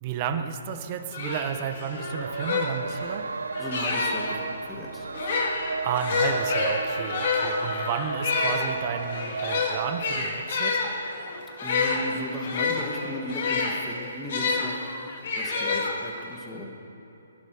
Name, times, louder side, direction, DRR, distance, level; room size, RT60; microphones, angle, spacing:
voice 1, 0.0-3.3 5.8-10.9, right 8 dB, 30° right, 7 dB, 1.2 m, -32 dB
sound 1, 0.7-0.8 1.1-4.4 5.1-14.7 15.2-16.3, left 4 dB, 55° left, 3.4 m, -28 dB
sound 2, 1.6-10.2, right 4 dB, 85° right, 1.1 m, -34 dB
sound 3, 2.5-2.8 6.3-8.3 11.1-11.4 12.7-12.9 14.5-15.2, left 7 dB, 30° left, 1.1 m, -41 dB
voice 2, 3.6-5.1 11.6-14.8 15.3-16.7, left 1 dB, 10° left, 0 dB, 2.2 m, -36 dB
21.5 x 11.5 x 5.1 m, 2.9 s
hypercardioid pair, 150°, 0 cm